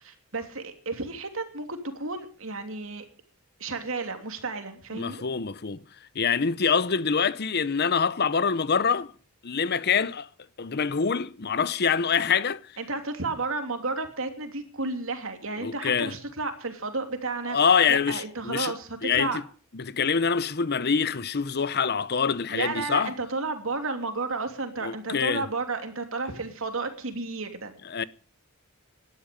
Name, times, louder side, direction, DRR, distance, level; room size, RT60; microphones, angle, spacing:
voice 1, 0.0-3.0 3.6-5.2 12.8-17.6 17.9-19.4 22.5-27.7, right 3 dB, 65° right, 3.0 m, -32 dB
voice 2, 4.9-5.8 6.1-9.1 9.4-10.3 10.6-12.6 15.6-16.1 17.5-18.7 19.0-19.4 19.7-23.1 24.8-25.5 27.8-28.0, left 6 dB, 50° left, 0.7 m, -25 dB
18.0 x 12.5 x 5.3 m
head